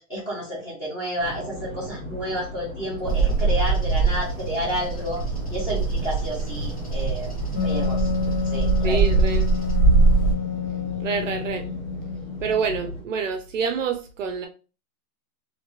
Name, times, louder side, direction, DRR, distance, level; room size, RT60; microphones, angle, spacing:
voice 1, 0.0-5.2 5.5-7.3 7.6-8.1 8.4-9.0, equal, 10° left, 1.0 m, -30 dB
sound 1, 1.2-13.0, right 1 dB, 10° right, 1.2 m, -37 dB
Bird vocalization bird call bird song, 3.1-10.3, right 4 dB, 25° left, 0.4 m, -22 dB
Wind instrument woodwind instrument, 7.5-12.9, left 7 dB, 45° left, 1.2 m, -29 dB
voice 2, 8.8-9.5 11.0-11.7 12.4-14.5, right 5 dB, 60° right, 0.5 m, -27 dB
2.8 x 2.8 x 2.9 m
hypercardioid pair, 175°, 44 cm